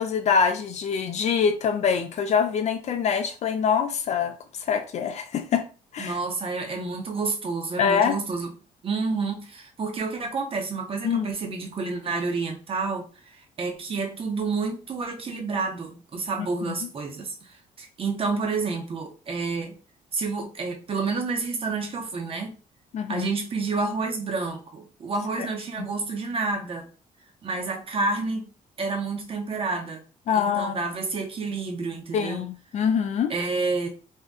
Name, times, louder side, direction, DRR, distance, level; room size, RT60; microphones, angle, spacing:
voice 1, 0.0-4.3 4.6-5.7 5.9-6.2 7.8-8.2 11.0-11.3 16.4-16.8 22.9-23.3 25.4-25.5 30.3-30.7 32.1-33.3, left 7 dB, 50° left, 0.4 m, -24 dB
voice 2, 6.0-8.5 8.8-19.7 20.1-22.5 23.1-26.9 27.4-28.5 28.8-30.0 30.3-32.4 33.3-33.9, right 4 dB, 40° right, 0.7 m, -29 dB
2.6 x 2.1 x 3.5 m
cardioid pair, 135°, 15 cm